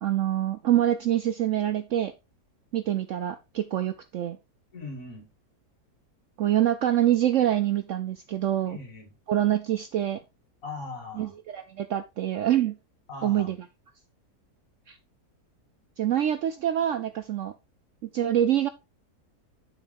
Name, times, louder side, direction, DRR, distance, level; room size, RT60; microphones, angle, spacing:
voice 1, 0.0-2.1 2.7-4.4 6.4-8.8 9.3-10.2 11.2-12.8 13.2-13.6 14.9-15.0 16.0-17.5 18.1-18.7, right 11 dB, 65° right, 0.8 m, -25 dB
voice 2, 4.7-5.3 8.7-9.1 10.6-11.3 13.1-13.5, left 3 dB, 55° left, 2.7 m, -39 dB
7.1 x 5.9 x 3.7 m
omnidirectional pair, 1.7 m